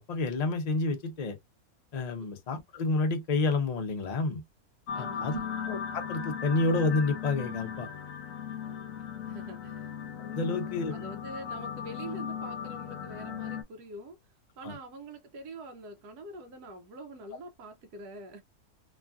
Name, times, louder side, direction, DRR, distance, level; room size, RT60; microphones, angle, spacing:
voice 1, 0.0-1.4 1.9-4.4 5.0-5.4 5.6-7.9 10.2-10.9 14.6-14.8, left 3 dB, 45° left, 0.5 m, -29 dB
sound 1, 4.9-13.6, left 8 dB, 70° left, 1.0 m, -37 dB
voice 2, 4.9-5.6 8.7-9.9 10.4-14.2 14.6-18.4, right 2 dB, 80° right, 1.2 m, -45 dB
3.1 x 2.4 x 2.3 m
omnidirectional pair, 1.7 m